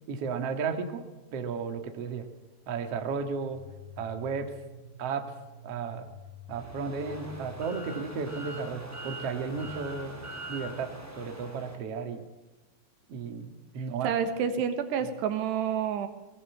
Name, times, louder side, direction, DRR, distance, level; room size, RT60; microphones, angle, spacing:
voice 1, 0.1-1.0 1.3-2.3 2.7-3.6 4.0-4.5 5.0-5.2 5.6-6.1 6.5-12.2 13.1-14.1, right 5 dB, 50° right, 6 dB, 2.0 m, -34 dB
sound 1, 3.5-10.4, left 1 dB, 20° left, 6.3 m, -49 dB
sound 2, 6.5-11.8, right 1 dB, 5° right, 1.5 m, -43 dB
voice 2, 14.0-16.1, right 7 dB, 75° right, 9 dB, 3.3 m, -28 dB
19.5 x 18.0 x 8.2 m, 1.1 s
omnidirectional pair, 5.1 m